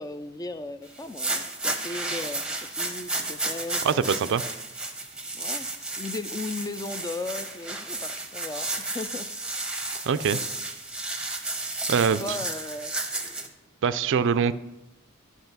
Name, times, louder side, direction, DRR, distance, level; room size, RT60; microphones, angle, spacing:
voice 1, 0.0-4.0 5.3-5.7 6.0-9.7 12.2-12.9 14.5-14.6, left 2 dB, 15° left, 12 dB, 0.4 m, -36 dB
sound 1, 1.0-13.5, right 2 dB, 5° right, 0.8 m, -32 dB
voice 2, 3.8-4.4 10.1-10.4 11.9-12.2 13.8-14.5, right 6 dB, 60° right, 14 dB, 0.4 m, -23 dB
10.0 x 5.5 x 6.0 m, 0.95 s
head